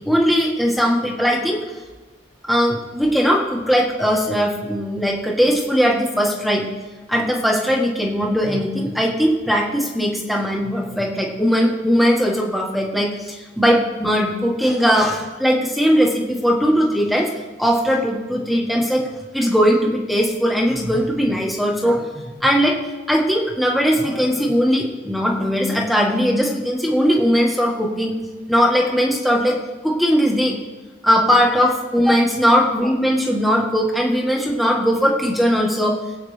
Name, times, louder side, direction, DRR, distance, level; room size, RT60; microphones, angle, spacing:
voice 1, 0.0-1.6 2.5-6.6 7.1-17.3 17.6-19.1 19.3-22.8 23.1-28.1 28.5-29.6 29.8-30.5 31.0-36.0, equal, ahead, -1 dB, 1.6 m, -19 dB
22.0 x 8.7 x 3.4 m, 1.2 s
head